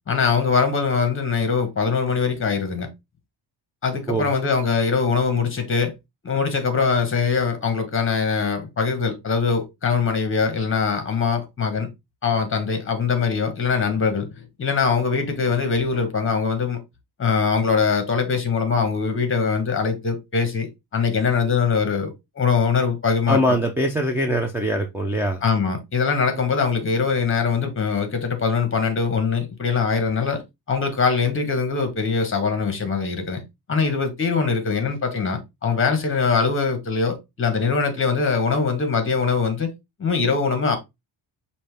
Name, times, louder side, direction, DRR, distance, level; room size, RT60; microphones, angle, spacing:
voice 1, 0.1-2.9 3.8-5.9 6.2-11.9 12.2-16.8 17.2-20.7 20.9-23.4 25.4-30.4 30.7-33.4 33.7-39.7 40.0-40.8, left 5 dB, 25° left, 1.1 m, -22 dB
voice 2, 23.3-25.4, equal, 5° right, 0.4 m, -22 dB
5.4 x 2.7 x 3.3 m
cardioid pair, 160°, 47 cm